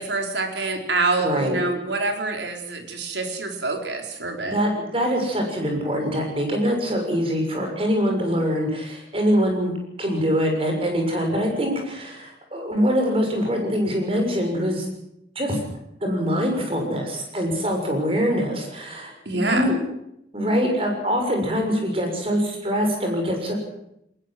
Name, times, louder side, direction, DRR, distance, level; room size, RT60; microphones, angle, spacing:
voice 1, 0.0-4.6 19.3-19.7, right 3 dB, 85° right, 3 dB, 4.4 m, -26 dB
voice 2, 1.2-1.6 4.5-14.9 15.3-15.6 16.0-19.8 20.3-23.5, equal, 30° right, 2 dB, 6.7 m, -24 dB
21.5 x 20.0 x 7.8 m, 0.79 s
head